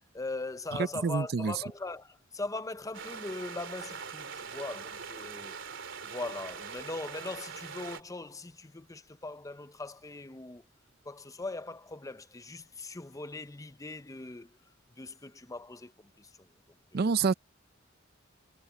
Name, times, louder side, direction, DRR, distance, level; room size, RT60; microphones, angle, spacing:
voice 1, 0.1-5.6 6.0-10.6 11.0-14.6 15.0-16.3 16.9-17.2, left 2 dB, 15° left, 0.7 m, -40 dB
voice 2, 1.0-1.5 16.9-17.3, right 5 dB, 50° right, 0.5 m, -27 dB
sound 1, 2.9-8.0, right 6 dB, 65° right, 3.5 m, -42 dB
head